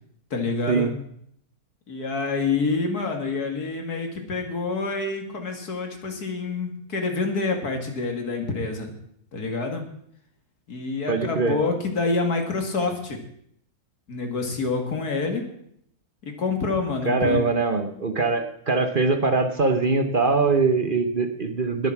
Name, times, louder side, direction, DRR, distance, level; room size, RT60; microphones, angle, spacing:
voice 1, 0.3-0.9 1.9-8.9 9.3-9.8 10.7-13.2 14.1-15.4 16.2-17.5, left 3 dB, 85° left, 4 dB, 2.8 m, -27 dB
voice 2, 11.1-11.6 17.0-21.9, right 4 dB, 40° right, 7 dB, 1.0 m, -22 dB
20.0 x 7.2 x 6.0 m, 0.70 s
omnidirectional pair, 1.6 m